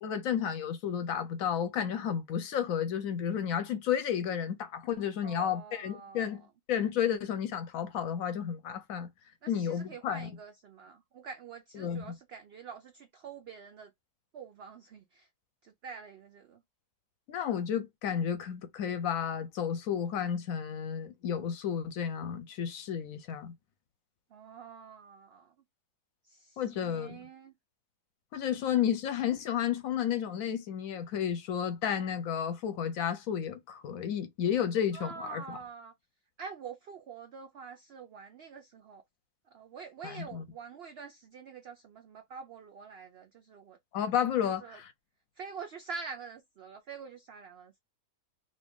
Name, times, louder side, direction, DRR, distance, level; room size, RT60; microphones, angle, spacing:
voice 1, 0.0-6.4 6.7-9.1 9.5-10.3 11.7-12.2 17.3-23.5 26.6-27.2 28.3-35.6 40.0-40.4 43.9-44.9, left 8 dB, 70° left, 0.9 m, -32 dB
voice 2, 5.2-6.4 9.4-13.9 14.3-15.3 15.6-16.6 24.3-25.5 26.2-27.5 34.9-35.9 36.4-39.0 39.5-43.8 44.4-44.8 45.4-47.7, right 5 dB, 90° right, 0.5 m, -46 dB
2.7 x 2.7 x 3.4 m
omnidirectional pair, 1.7 m